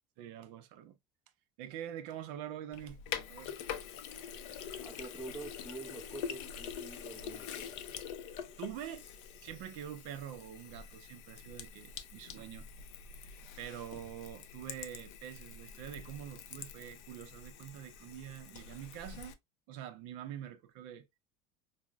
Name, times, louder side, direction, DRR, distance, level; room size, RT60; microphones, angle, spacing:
voice 1, 0.2-1.0 1.6-3.0 3.3-3.5 8.6-9.0 9.4-12.7 13.2-19.4 19.7-21.1, right 10 dB, 60° right, 0.5 m, -45 dB
Sink (filling or washing), 2.7-19.3, left 8 dB, 80° left, 0.5 m, -45 dB
voice 2, 4.8-7.7, right 2 dB, ahead, 0.5 m, -47 dB
4.8 x 2.0 x 2.2 m
cardioid pair, 170°, 15 cm